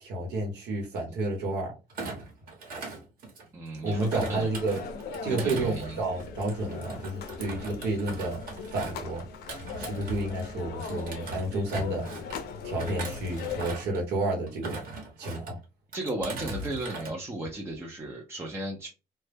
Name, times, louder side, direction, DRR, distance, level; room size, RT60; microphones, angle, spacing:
voice 1, 0.0-1.7 3.8-4.8 5.2-8.4 8.7-9.2 9.8-12.1 12.6-14.8 15.2-15.5, right 2 dB, 80° right, 0 dB, 1.0 m, -30 dB
Thump thud, 1.9-3.7 4.1-10.5 10.8-12.4 12.8-14.0 14.5-15.5 15.9-17.1 17.4-17.8, right 3 dB, 60° right, 1.0 m, -40 dB
voice 2, 3.5-4.5 5.3-6.0 9.8-10.0 15.9-18.9, right 1 dB, 15° right, -1 dB, 0.5 m, -35 dB
sound 1, 3.8-13.7, left 5 dB, 70° left, 0.5 m, -40 dB
2.2 x 2.0 x 3.2 m, 0.29 s
cardioid pair, 110°, 17 cm